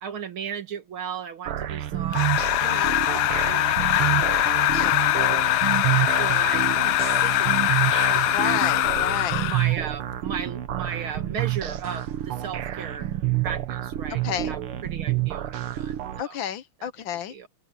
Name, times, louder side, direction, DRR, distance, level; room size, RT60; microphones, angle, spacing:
voice 1, 0.0-8.6 9.4-13.1 13.4-16.4 16.8-17.5, right 7 dB, 75° right, 2.6 m, -36 dB
sound 1, 1.5-16.2, right 13 dB, 90° right, 2.0 m, -28 dB
sound 2, 2.1-9.8, left 15 dB, 90° left, 0.8 m, -22 dB
voice 2, 2.6-3.0 4.7-4.9 8.3-9.5 14.2-14.5 16.2-17.3, left 10 dB, 70° left, 1.5 m, -31 dB
omnidirectional pair, 2.3 m